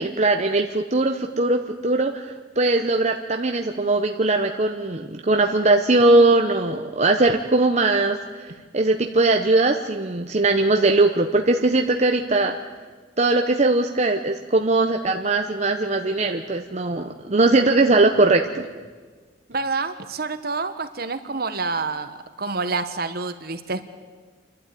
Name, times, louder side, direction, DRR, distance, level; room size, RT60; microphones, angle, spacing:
voice 1, 0.0-12.5 13.2-18.7, right 2 dB, 40° right, 4 dB, 0.9 m, -20 dB
voice 2, 19.5-23.8, right 3 dB, 55° right, 10 dB, 1.4 m, -28 dB
29.0 x 12.0 x 9.2 m, 1.5 s
head